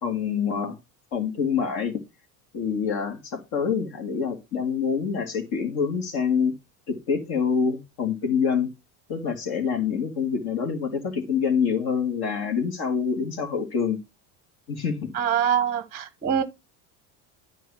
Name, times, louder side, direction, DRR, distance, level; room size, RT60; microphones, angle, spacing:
voice 1, 0.0-0.8 1.1-2.0 2.5-6.5 6.9-8.7 9.1-14.0 14.7-15.1, left 6 dB, 50° left, 3.0 m, -26 dB
voice 2, 15.1-16.4, right 8 dB, 20° right, 1.0 m, -24 dB
10.5 x 4.1 x 5.9 m
cardioid pair, 135°, 47 cm